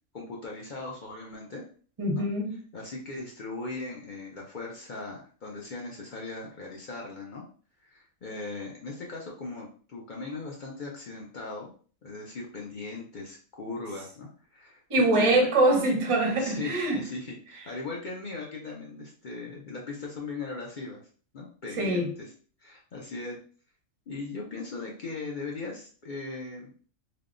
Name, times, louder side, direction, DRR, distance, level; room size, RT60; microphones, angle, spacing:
voice 1, 0.1-1.6 2.1-2.2 2.7-7.4 7.8-11.7 12.0-15.5 16.4-21.0 21.3-22.3 22.6-23.4 24.1-26.7, left 3 dB, 55° left, -2 dB, 0.5 m, -39 dB
voice 2, 2.0-2.6 14.9-17.0 21.8-22.1, right 2 dB, 35° right, 1 dB, 0.6 m, -24 dB
3.4 x 2.2 x 2.4 m, 0.42 s
omnidirectional pair, 1.4 m